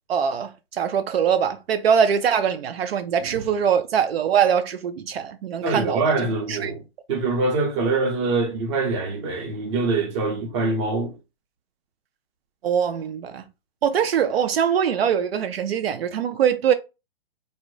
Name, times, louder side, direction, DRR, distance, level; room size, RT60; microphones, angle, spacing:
voice 1, 0.1-6.0 6.5-6.7 12.6-13.4 13.8-16.7, right 8 dB, 75° right, 0.5 m, -22 dB
voice 2, 5.6-6.8 7.1-11.2, right 3 dB, 30° right, 0.6 m, -24 dB
2.7 x 2.0 x 3.0 m
hypercardioid pair, 150°, 31 cm